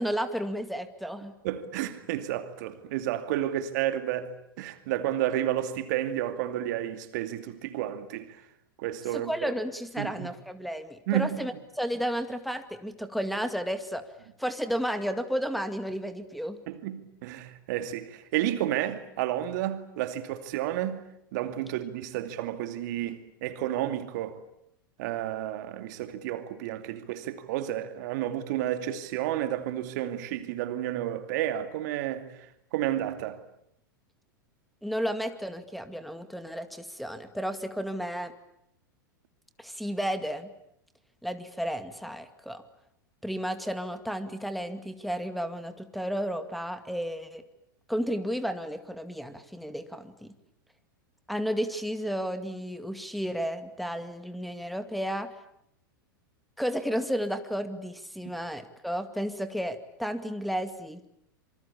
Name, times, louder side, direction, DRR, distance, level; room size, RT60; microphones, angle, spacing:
voice 1, 0.0-1.3 9.1-14.0 14.4-16.6 34.8-38.3 39.6-40.5 41.2-42.6 43.2-47.4 47.9-50.3 51.3-55.3 56.6-61.0, equal, ahead, 2.2 m, -32 dB
voice 2, 1.4-8.4 8.8-9.5 10.0-10.3 11.1-11.4 16.7-21.0 21.3-24.4 25.0-32.3 32.7-33.4, right 12 dB, 55° right, 2.5 m, -31 dB
27.0 x 25.0 x 8.7 m
figure-of-eight pair, 95°, 11 cm